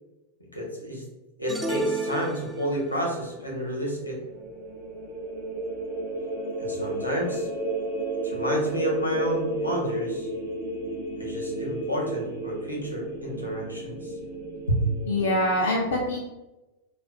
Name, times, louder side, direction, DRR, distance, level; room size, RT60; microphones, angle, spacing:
voice 1, 0.5-1.0 1.4-4.2 6.6-7.5 8.2-10.3 11.2-14.1 14.7-14.8, equal, 90° left, -2 dB, 0.8 m, -30 dB
sound 1, 1.5-3.0, right 1 dB, 10° right, 0.3 m, -31 dB
sound 2, 3.6-15.5, right 2 dB, 50° right, 0.9 m, -33 dB
voice 2, 15.1-16.2, left 1 dB, 65° left, -2 dB, 0.4 m, -24 dB
2.4 x 2.2 x 3.3 m, 1.0 s
figure-of-eight pair, 90°, 0 cm